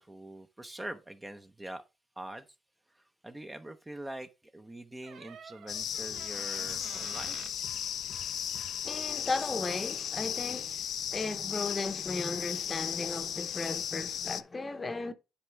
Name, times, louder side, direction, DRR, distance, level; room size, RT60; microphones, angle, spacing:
voice 1, 0.0-1.8 2.2-2.5 2.9-7.4, right 1 dB, 15° right, 0.7 m, -44 dB
Door, 5.0-7.6 9.4-9.5 9.6-10.0, right 7 dB, 70° right, 0.7 m, -50 dB
sound 1, 5.7-14.4, left 9 dB, 70° left, 0.4 m, -36 dB
voice 2, 8.8-10.9 11.1-15.1, left 3 dB, 25° left, 0.8 m, -35 dB
9.7 x 4.3 x 3.4 m
cardioid pair, 90°, 0 cm